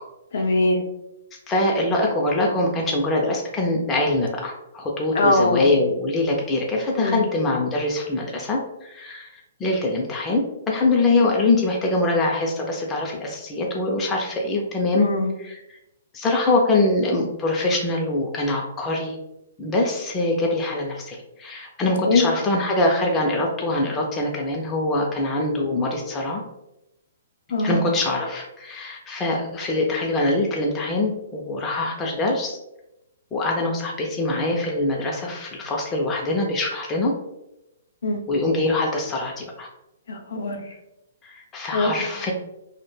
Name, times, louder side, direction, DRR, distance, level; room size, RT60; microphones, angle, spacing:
voice 1, 0.3-0.8 5.1-5.7 7.0-7.2 14.9-15.3 22.0-22.3 27.5-27.9 38.0-38.3 40.1-40.6 41.7-42.1, left 2 dB, 70° left, 2 dB, 0.6 m, -22 dB
voice 2, 1.5-9.3 9.6-15.1 15.4-15.6 16.1-19.2 19.6-26.4 27.6-32.6 33.3-37.1 38.3-39.7 41.2-42.3, left 2 dB, 15° left, -1 dB, 0.3 m, -23 dB
2.1 x 2.1 x 3.1 m, 0.88 s
hypercardioid pair, 160°, 0 cm